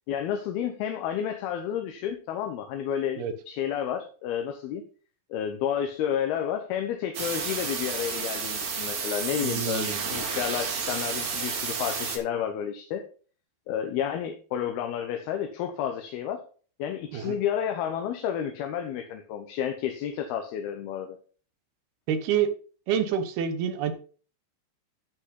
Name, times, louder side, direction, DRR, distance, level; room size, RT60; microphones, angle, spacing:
voice 1, 0.1-4.8 5.3-13.1 13.7-16.4 16.8-21.2, left 9 dB, 70° left, 5 dB, 2.8 m, -31 dB
sound 1, 7.1-12.2, right 5 dB, 45° right, 3.3 m, -31 dB
voice 2, 9.4-10.0 17.1-17.4 22.1-22.5 22.9-23.9, right 8 dB, 70° right, 9 dB, 3.0 m, -27 dB
14.5 x 5.5 x 3.9 m, 0.39 s
omnidirectional pair, 5.0 m